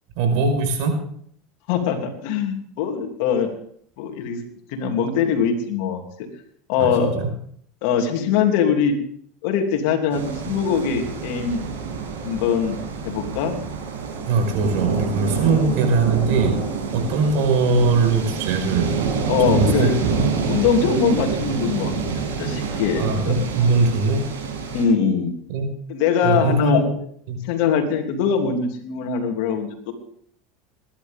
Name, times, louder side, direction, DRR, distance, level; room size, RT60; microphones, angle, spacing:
voice 1, 0.2-0.9 6.8-6.9 7.2-7.3 14.3-16.5 16.9-18.9 19.5-20.2 23.0-24.2 25.5-25.7 26.2-26.9 27.3-27.4, right 4 dB, 65° right, 4 dB, 5.2 m, -20 dB
voice 2, 1.7-3.5 4.0-4.4 4.7-6.0 6.7-7.2 7.8-8.9 9.4-11.6 12.2-12.7 13.0-13.6 15.4-15.7 19.3-20.0 20.5-22.0 22.4-23.9 24.7-25.3 25.9-26.8 27.4-29.9, left 6 dB, 70° left, 4 dB, 3.0 m, -22 dB
sound 1, 10.1-24.8, right 6 dB, 85° right, 6.1 m, -27 dB
21.5 x 11.5 x 3.7 m, 0.63 s
supercardioid pair, 105°, 0 cm